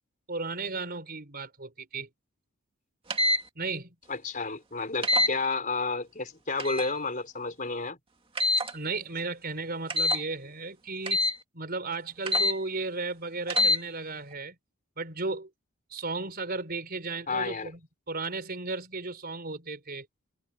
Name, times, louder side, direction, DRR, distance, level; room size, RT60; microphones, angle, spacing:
voice 1, 0.3-2.1 3.5-3.9 8.7-14.6 15.0-15.5 15.9-17.8 18.1-20.1, right 3 dB, 45° right, 5.0 m, -35 dB
sound 1, 3.1-3.4 5.0-5.3 6.6-6.9 8.4-8.7 9.9-10.2 11.1-11.4 12.3-12.6 13.5-13.8, left 2 dB, 25° right, 2.2 m, -24 dB
voice 2, 4.1-8.0 17.3-17.7, left 3 dB, 40° left, 4.3 m, -31 dB
head